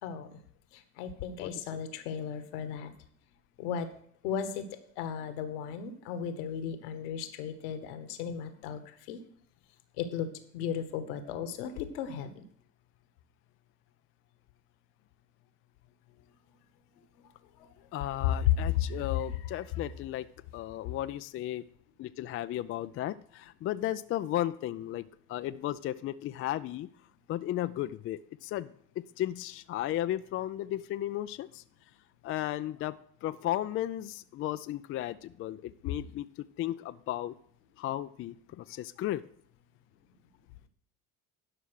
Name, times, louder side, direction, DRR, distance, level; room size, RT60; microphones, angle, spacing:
voice 1, 0.0-0.4 0.7-2.9 3.6-3.9 4.2-4.6 5.0-9.2 10.0-10.3 10.5-12.4 17.2-17.3 17.6-17.7 18.2-19.6 20.8-20.9, left 9 dB, 70° left, 9 dB, 1.4 m, -34 dB
voice 2, 17.9-20.3 20.5-21.6 22.0-26.9 27.3-31.6 32.2-37.3 37.8-39.3, left 13 dB, 30° left, 13 dB, 0.4 m, -35 dB
11.5 x 5.5 x 6.2 m, 0.63 s
hypercardioid pair, 70°, 48 cm